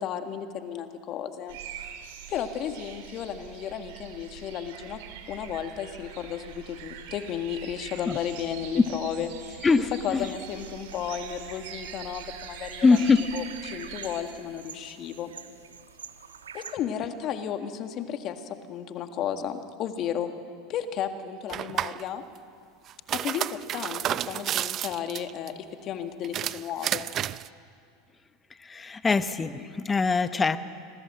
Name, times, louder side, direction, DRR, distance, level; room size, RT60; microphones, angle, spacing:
voice 1, 0.0-1.6 2.3-5.0 5.3-9.7 10.0-12.9 13.3-15.3 16.5-20.3 20.7-22.2 23.1-27.1, left 9 dB, 45° left, 7 dB, 1.8 m, -33 dB
sound 1, 1.5-14.2, right 8 dB, 65° right, 3.2 m, -43 dB
voice 2, 9.6-10.3 12.8-13.2 28.6-30.6, left 4 dB, 20° left, 12 dB, 1.0 m, -23 dB
sound 2, 10.0-16.8, right 7 dB, 85° right, 1.4 m, -48 dB
sound 3, 21.5-22.0 22.9-25.5 26.2-27.5, right 11 dB, 40° right, 0.5 m, -31 dB
26.5 x 21.5 x 7.8 m, 2.3 s
hypercardioid pair, 85°, 0 cm